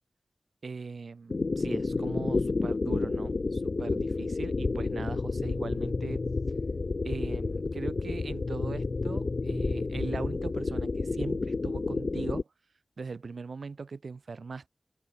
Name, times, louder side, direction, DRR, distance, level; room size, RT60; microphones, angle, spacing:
voice 1, 0.6-6.2 7.0-12.5 13.0-14.7, right 4 dB, 85° right, 0.9 m, -39 dB
sound 1, 1.3-12.4, left 3 dB, 65° left, 0.5 m, -30 dB
open air
wide cardioid pair, 60°, 0 cm